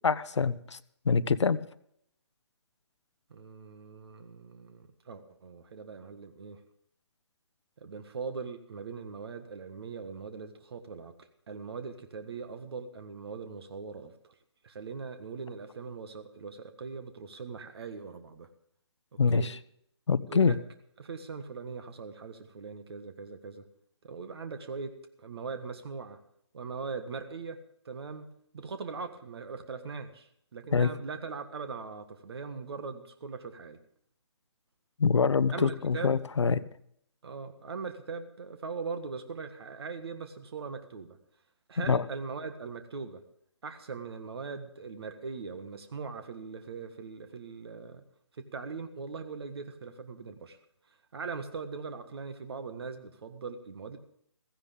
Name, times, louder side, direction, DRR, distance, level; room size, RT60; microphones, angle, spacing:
voice 1, 0.0-0.8 1.0-1.6 19.2-19.5 20.1-20.5 30.7-30.9 35.0-36.6 41.9-42.0, left 5 dB, 85° left, 15 dB, 0.9 m, -25 dB
voice 2, 3.3-6.6 7.8-14.3 14.6-18.5 19.3-19.5 20.3-20.6 21.0-23.6 24.0-26.2 26.5-27.6 27.8-28.3 28.5-33.8 35.5-36.2 37.2-41.2 41.7-43.2 43.6-48.0 48.3-50.6 50.9-54.0, right 5 dB, 60° right, 8 dB, 1.7 m, -40 dB
16.0 x 15.5 x 3.6 m, 0.68 s
hypercardioid pair, 155°, 15 cm